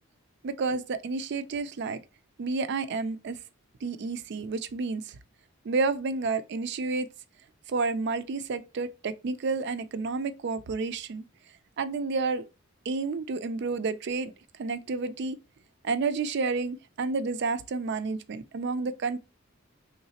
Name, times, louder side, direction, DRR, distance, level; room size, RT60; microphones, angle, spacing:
voice 1, 0.4-2.0 2.4-3.4 3.8-5.2 5.7-7.1 7.7-11.2 11.8-12.4 12.9-14.3 14.6-15.4 15.8-19.2, right 4 dB, 60° right, 0.4 m, -30 dB
3.9 x 3.2 x 2.8 m
head